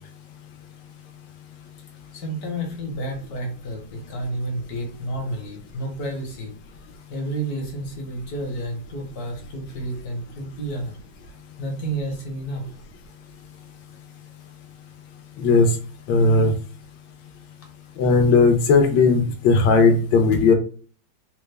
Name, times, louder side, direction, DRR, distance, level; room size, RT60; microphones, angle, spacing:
voice 1, 2.1-6.5 7.1-10.9 11.6-12.7, right 1 dB, 60° left, 1 dB, 1.4 m, -30 dB
voice 2, 15.4-15.7 16.1-16.5 18.0-20.5, left 4 dB, 75° left, 5 dB, 1.3 m, -17 dB
4.0 x 2.1 x 3.3 m, 0.40 s
omnidirectional pair, 2.0 m